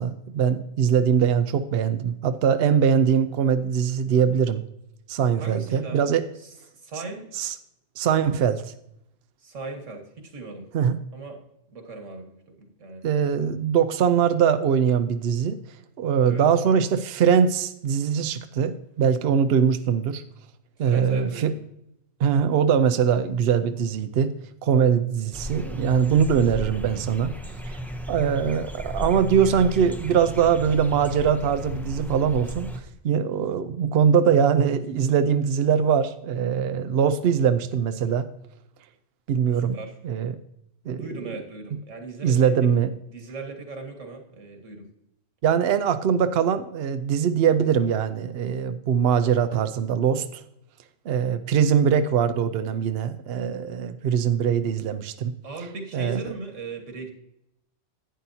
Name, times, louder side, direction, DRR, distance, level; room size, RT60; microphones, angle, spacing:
voice 1, 0.0-4.6 5.1-6.2 7.4-7.5 8.0-8.7 10.7-11.0 13.0-15.6 16.0-20.2 20.8-21.5 22.2-24.3 24.6-27.3 27.7-27.8 28.1-38.3 39.3-39.7 40.0-40.3 40.9-41.0 42.2-42.9 45.4-50.4 51.1-55.3 55.9-56.2, right 7 dB, 65° right, 10 dB, 0.7 m, -22 dB
voice 2, 5.4-6.0 6.4-7.3 9.4-10.7 11.1-11.4 11.7-13.0 16.2-16.5 20.8-21.6 39.5-40.0 41.0-42.5 43.1-44.9 55.4-57.1, right 3 dB, 80° right, 4 dB, 1.9 m, -38 dB
sound 1, 25.3-32.8, equal, ahead, 0.5 m, -35 dB
11.0 x 9.3 x 2.7 m, 0.81 s
omnidirectional pair, 1.3 m